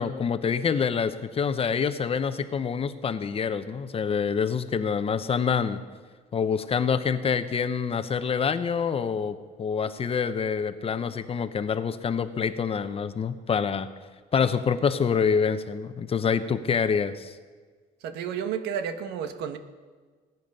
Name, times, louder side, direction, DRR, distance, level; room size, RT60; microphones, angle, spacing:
voice 1, 0.0-5.8 6.3-13.9 14.3-17.3, left 6 dB, 35° left, 11 dB, 0.9 m, -26 dB
voice 2, 18.0-19.6, right 8 dB, 80° right, 8 dB, 1.2 m, -31 dB
19.5 x 9.4 x 5.4 m, 1.5 s
cardioid pair, 110°, 17 cm